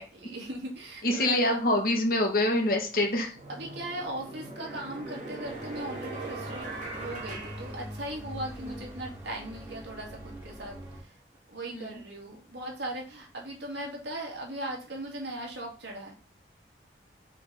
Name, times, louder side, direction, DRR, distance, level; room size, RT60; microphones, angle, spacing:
voice 1, 0.0-1.6 3.5-6.7 7.0-11.2 11.5-16.1, right 1 dB, 80° right, -1 dB, 2.6 m, -38 dB
voice 2, 1.0-3.3 11.7-11.9, left 1 dB, 55° left, 2 dB, 1.9 m, -25 dB
sound 1, 3.3-8.5, right 2 dB, 45° right, 2.5 m, -41 dB
sound 2, 5.4-11.0, equal, 15° right, 2.5 m, -43 dB
6.5 x 4.2 x 5.7 m, 0.36 s
head